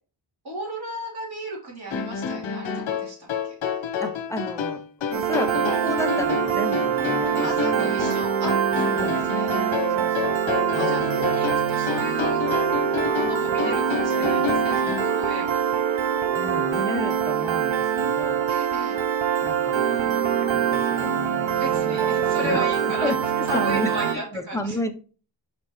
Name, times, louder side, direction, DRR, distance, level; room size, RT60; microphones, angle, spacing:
voice 1, 0.4-3.5 7.4-9.5 10.7-12.4 13.1-15.6 18.5-19.1 21.5-23.1 23.5-24.8, equal, 55° right, -3 dB, 3.0 m, -34 dB
sound 1, 1.9-15.2, left 7 dB, 85° left, 1.0 m, -29 dB
voice 2, 4.0-7.5 7.7-7.9 9.0-9.3 9.9-11.6 16.3-18.5 19.4-20.2 20.4-22.7 23.0-23.2 23.5-24.9, left 1 dB, 5° left, 5 dB, 0.5 m, -33 dB
Piano, 5.1-24.2, right 8 dB, 75° right, 0.7 m, -24 dB
6.6 x 5.3 x 3.0 m, 0.37 s
wide cardioid pair, 180°, 46 cm